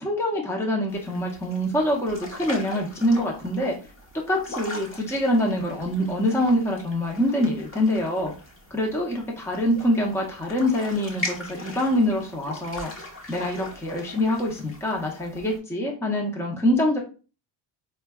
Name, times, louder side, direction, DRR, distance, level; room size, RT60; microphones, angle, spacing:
voice 1, 0.0-3.8 4.3-8.3 8.7-12.9 13.3-17.0, left 1 dB, 5° left, -1 dB, 0.6 m, -25 dB
sound 1, 0.9-15.6, left 1 dB, 30° left, 1.0 m, -40 dB
4.4 x 2.2 x 2.2 m, 0.34 s
cardioid pair, 125°, 43 cm